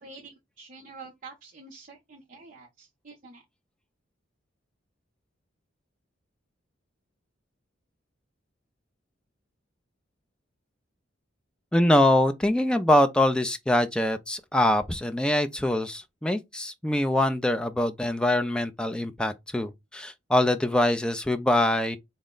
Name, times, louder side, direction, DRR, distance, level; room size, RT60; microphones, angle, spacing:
voice 1, 0.0-3.4, right 4 dB, 45° right, 0.6 m, -47 dB
voice 2, 11.7-22.0, left 1 dB, 5° left, 0.3 m, -24 dB
4.2 x 2.1 x 3.7 m
head